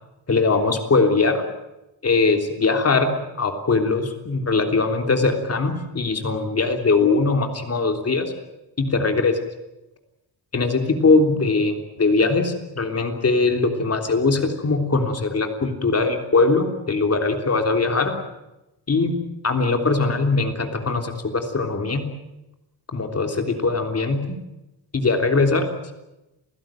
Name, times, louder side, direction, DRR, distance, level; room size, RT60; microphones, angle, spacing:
voice 1, 0.3-1.4 2.0-8.3 8.8-9.4 10.5-18.2 18.9-19.2 19.4-22.1 22.9-24.4 24.9-25.7, left 3 dB, 40° left, 5 dB, 3.4 m, -21 dB
28.5 x 16.0 x 8.9 m, 0.95 s
wide cardioid pair, 140°, 39 cm